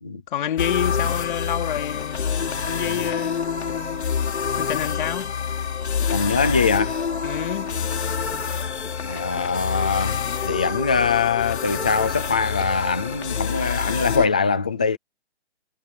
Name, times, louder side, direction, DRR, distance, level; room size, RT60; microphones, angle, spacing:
voice 1, 0.3-4.3 4.6-5.3 7.2-7.7, left 10 dB, 45° left, 3.2 m, -29 dB
sound 1, 0.6-14.3, left 6 dB, 75° left, 3.6 m, -27 dB
voice 2, 6.1-7.1 9.0-15.0, left 5 dB, 5° left, 0.4 m, -23 dB
hypercardioid pair, 160°, 34 cm